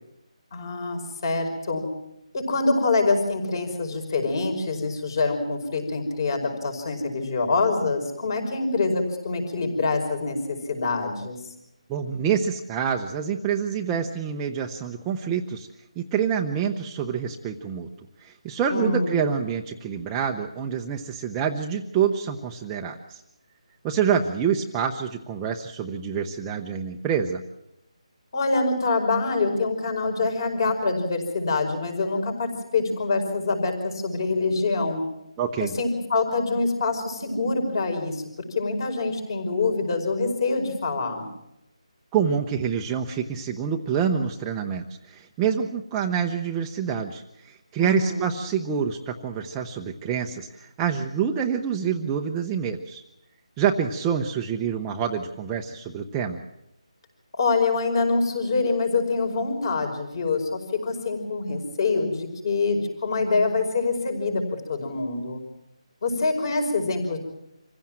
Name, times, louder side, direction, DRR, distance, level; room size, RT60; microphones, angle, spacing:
voice 1, 0.5-1.8 2.3-11.4 18.7-19.3 28.3-35.0 35.6-38.2 38.5-41.3 47.8-48.4 57.3-64.4 64.7-65.4 66.0-67.2, left 3 dB, 40° left, 5 dB, 5.3 m, -25 dB
voice 2, 11.9-15.7 16.0-17.9 18.2-23.2 23.8-27.4 35.4-35.7 42.1-53.0 53.6-56.4, right 7 dB, 10° right, 2 dB, 0.8 m, -27 dB
26.0 x 16.0 x 7.5 m, 0.84 s
figure-of-eight pair, 165°, 4 cm